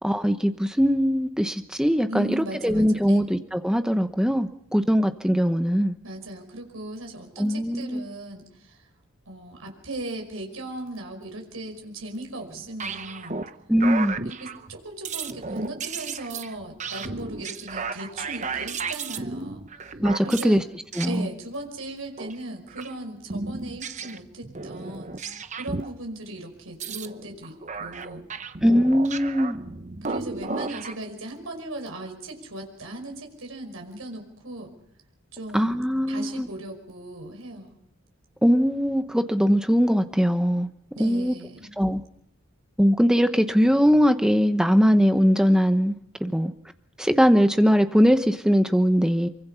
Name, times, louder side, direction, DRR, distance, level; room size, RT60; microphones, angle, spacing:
voice 1, 0.0-5.9 7.4-8.0 13.7-14.2 20.0-20.6 21.0-21.3 28.6-29.6 35.5-36.5 38.4-40.7 41.0-41.3 41.8-42.0 42.8-46.0 46.2-46.5 47.0-49.3, equal, 5° right, 8 dB, 1.0 m, -21 dB
voice 2, 2.1-3.2 6.0-8.8 9.3-13.4 14.2-19.6 20.2-20.6 21.1-25.2 25.5-28.3 30.0-34.7 35.3-35.8 36.1-37.8 41.0-41.7, right 1 dB, 80° right, 3 dB, 5.4 m, -37 dB
sound 1, 12.5-13.6 13.8-14.8 15.1-20.5 20.9-21.1 22.2-22.4 22.7-22.9 23.3-25.9 26.7-31.0, right 4 dB, 35° right, 0.9 m, -34 dB
25.0 x 24.0 x 5.7 m, 0.73 s
head